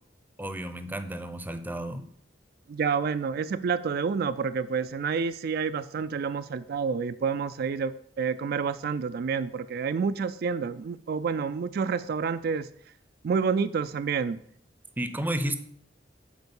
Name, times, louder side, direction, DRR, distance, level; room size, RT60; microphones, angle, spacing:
voice 1, 0.4-2.1 15.0-15.6, right 1 dB, 10° right, 9 dB, 0.6 m, -32 dB
voice 2, 2.7-12.7 13.2-14.4, right 5 dB, 55° right, 12 dB, 0.3 m, -29 dB
8.0 x 4.6 x 7.0 m, 0.63 s
head